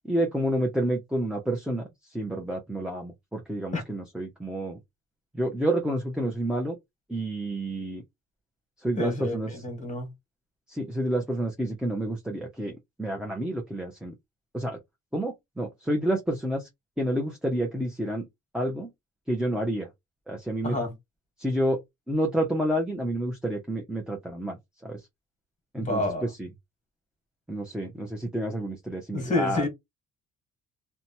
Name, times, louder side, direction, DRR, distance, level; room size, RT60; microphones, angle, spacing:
voice 1, 0.1-4.8 5.3-6.8 7.1-8.0 8.8-9.5 10.7-14.1 14.5-14.8 15.1-16.7 17.0-18.3 18.5-18.9 19.3-19.9 20.3-20.8 21.4-21.8 22.1-25.0 25.7-26.5 27.5-29.7, right 1 dB, 5° right, 0.8 m, -29 dB
voice 2, 9.0-10.1 20.6-21.0 25.8-26.3 29.1-29.7, left 2 dB, 25° left, 1.5 m, -29 dB
2.8 x 2.3 x 2.6 m
cardioid pair, 90°, 30 cm